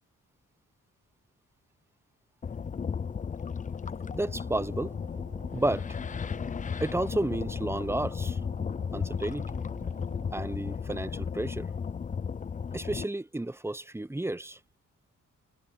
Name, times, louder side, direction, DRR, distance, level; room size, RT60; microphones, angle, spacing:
sound 1, 2.4-13.0, left 6 dB, 25° left, 0.4 m, -34 dB
voice 1, 4.1-4.9 5.5-5.9 6.8-8.4 8.9-9.6 10.3-11.7 12.7-14.6, right 1 dB, 10° right, 0.8 m, -32 dB
sound 2, 4.1-10.5, right 3 dB, 25° right, 4.7 m, -51 dB
cardioid pair, 105°, 33 cm